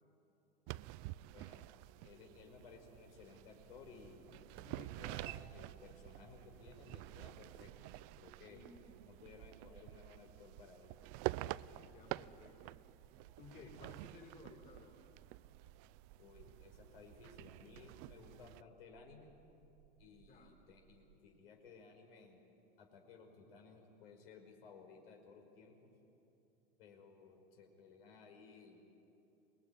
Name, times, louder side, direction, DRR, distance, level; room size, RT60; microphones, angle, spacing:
sound 1, 0.7-18.6, right 18 dB, 40° right, 0.5 m, -49 dB
voice 1, 1.3-1.7 2.0-7.7 8.2-8.6 9.1-10.9 16.2-19.3 20.0-22.4 22.8-25.9 26.8-28.8, left 4 dB, 75° left, 3 dB, 5.3 m, -58 dB
voice 2, 4.6-4.9 8.5-8.7 11.7-12.8 13.4-14.9 20.3-20.5, left 4 dB, 30° left, 1 dB, 4.7 m, -57 dB
sound 2, 5.6-21.2, right 9 dB, 70° right, 1.4 m, -69 dB
25.5 x 20.5 x 10.0 m, 2.9 s
supercardioid pair, 140°, 29 cm